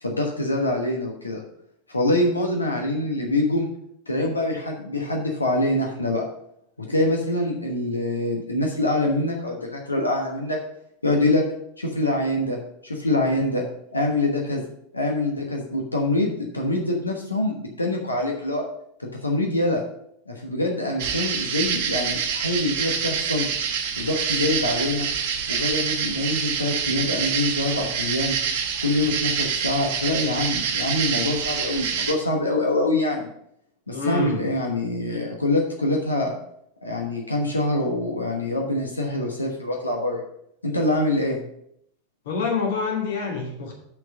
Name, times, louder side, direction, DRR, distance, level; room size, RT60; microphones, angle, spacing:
voice 1, 0.0-1.4 1.9-3.7 4.1-6.2 6.9-10.6 11.0-11.4 11.8-13.6 13.9-14.6 14.9-18.7 19.0-19.8 20.3-23.5 24.0-25.1 25.5-28.4 28.8-33.3 33.9-36.3 36.8-40.2 40.6-41.4, left 1 dB, 85° left, 0 dB, 1.2 m, -25 dB
sound 1, 21.0-32.1, right 7 dB, 55° right, 1.1 m, -26 dB
voice 2, 33.9-34.5 42.2-43.8, left 4 dB, 65° left, -1 dB, 2.6 m, -26 dB
6.1 x 5.8 x 7.0 m, 0.73 s
figure-of-eight pair, 85°, 0 cm